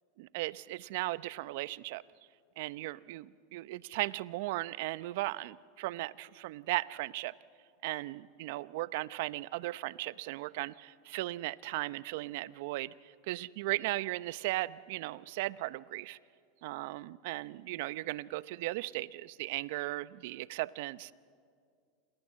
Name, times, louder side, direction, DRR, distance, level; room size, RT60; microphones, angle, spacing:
voice 1, 0.2-2.0 2.6-7.3 7.8-16.2 16.6-21.1, right 18 dB, 65° right, 18 dB, 0.7 m, -37 dB
28.0 x 28.0 x 7.6 m, 2.2 s
hypercardioid pair, 105°, 0 cm